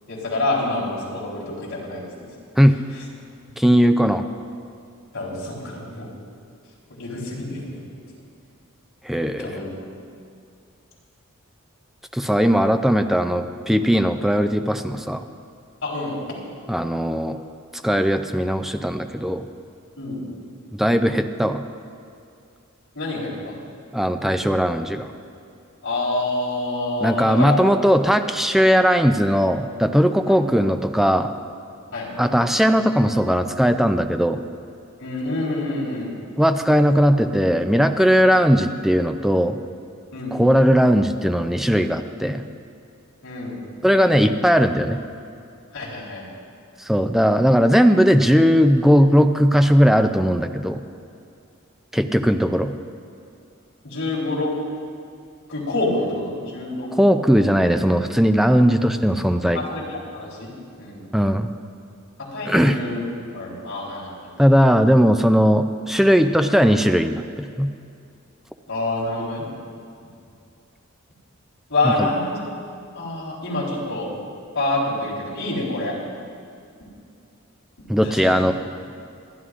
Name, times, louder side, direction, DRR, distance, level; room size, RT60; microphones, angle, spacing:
voice 1, 0.1-2.3 2.9-3.0 5.1-6.1 7.0-7.8 9.4-9.8 15.8-16.2 20.0-20.2 22.9-23.6 25.8-27.6 30.3-30.4 31.9-32.1 35.0-36.1 40.1-40.4 43.2-43.6 45.7-46.3 53.8-54.5 55.5-56.9 59.5-60.5 60.8-61.0 62.2-63.0 63.3-64.3 68.7-69.5 71.7-72.4 72.9-74.1 74.5-75.9 78.0-78.4, left 2 dB, 65° left, -6 dB, 3.9 m, -27 dB
voice 2, 3.6-4.2 9.0-9.5 12.1-15.2 16.7-17.4 17.8-19.5 20.7-21.6 23.9-25.1 27.0-31.3 32.2-34.4 36.4-39.6 40.3-42.4 43.8-45.0 46.8-50.8 51.9-52.7 57.0-59.6 61.1-61.5 62.5-62.8 64.4-67.7 71.8-72.1 77.9-78.5, equal, ahead, 7 dB, 0.4 m, -18 dB
27.0 x 11.0 x 2.5 m, 2.4 s
head